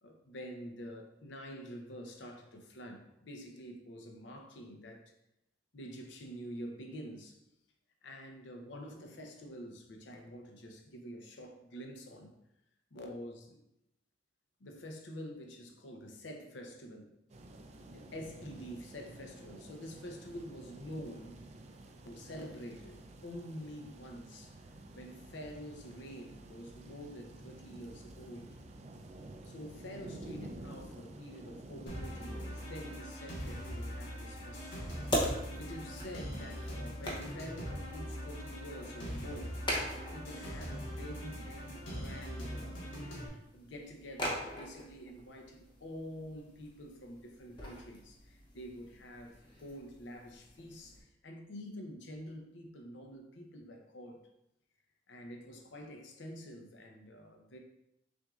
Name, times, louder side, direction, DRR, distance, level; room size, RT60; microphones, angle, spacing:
voice 1, 0.0-5.0 5.7-7.4 8.0-12.3 12.9-13.6 14.6-17.1 17.9-21.4 22.0-24.5 24.9-28.6 29.4-39.6 40.1-50.9 51.2-54.2 55.1-57.6, equal, 70° left, 3 dB, 0.7 m, -47 dB
sound 1, 17.3-33.0, right 2 dB, 35° right, 0.3 m, -51 dB
sound 2, 31.9-43.3, equal, 85° left, 1.3 m, -42 dB
sound 3, 33.4-51.0, equal, 25° left, 0.7 m, -43 dB
5.9 x 2.6 x 2.4 m, 0.82 s
head